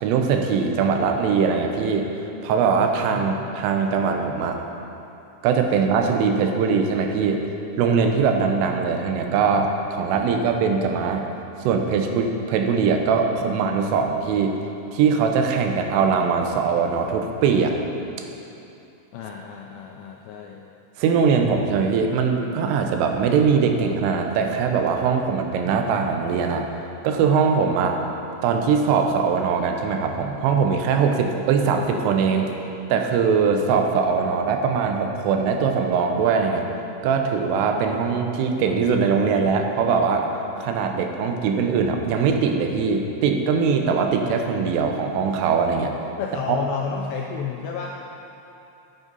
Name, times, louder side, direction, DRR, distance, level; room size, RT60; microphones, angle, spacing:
voice 1, 0.0-2.1 2.4-4.6 5.4-7.4 7.8-11.3 11.6-14.6 14.9-17.7 21.0-26.7 27.0-28.0 28.4-32.5 32.9-36.6 37.0-40.3 40.6-45.9 46.5-46.6, right 5 dB, 85° right, 4 dB, 3.4 m, -21 dB
voice 2, 19.1-20.6 41.3-41.4 46.2-48.0, left 6 dB, 85° left, 0 dB, 2.4 m, -31 dB
12.5 x 8.3 x 5.3 m, 2.8 s
omnidirectional pair, 5.6 m